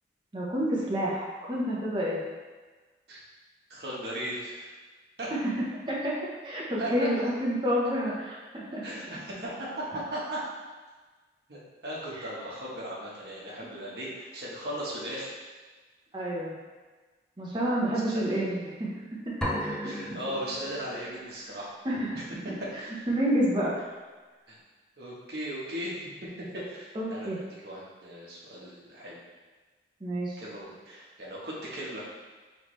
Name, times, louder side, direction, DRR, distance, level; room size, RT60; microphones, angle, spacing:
voice 1, 0.3-2.2 5.3-5.4 5.9-6.1 6.4-8.8 12.2-12.3 13.6-13.7 16.1-16.5 17.4-18.9 19.3-19.4 19.6-19.9 21.8-22.2 23.1-23.8 26.9-27.4 30.0-30.4, equal, 25° right, -5 dB, 0.8 m, -29 dB
voice 2, 3.7-4.7 5.2-5.3 6.8-7.3 8.8-10.4 11.5-15.3 17.9-18.4 19.8-21.7 22.6-23.1 24.5-24.6 25.0-26.1 26.5-29.2 30.4-32.1, right 1 dB, 60° right, -5 dB, 1.1 m, -37 dB
sound 1, 19.4-21.2, equal, 5° left, 0.5 m, -35 dB
4.7 x 3.2 x 3.1 m, 1.3 s
head